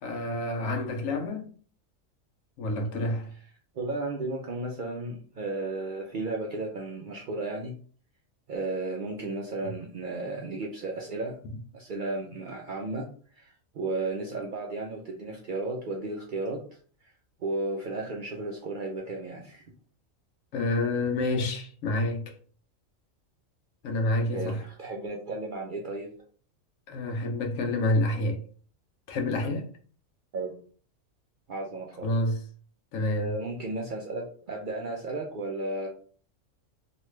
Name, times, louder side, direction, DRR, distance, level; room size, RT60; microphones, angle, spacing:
voice 1, 0.0-1.5 2.6-3.3 9.6-9.7 20.5-22.3 23.8-24.6 26.9-28.4 29.1-29.7 32.0-32.4 32.9-33.3, left 1 dB, 80° left, 1.1 m, -28 dB
voice 2, 3.7-7.8 8.5-11.4 11.7-16.6 17.0-17.1 17.4-19.6 24.3-26.1 30.3-30.6 31.5-32.1 33.0-35.9, right 2 dB, 60° right, 0.5 m, -34 dB
3.1 x 2.3 x 3.1 m
omnidirectional pair, 1.4 m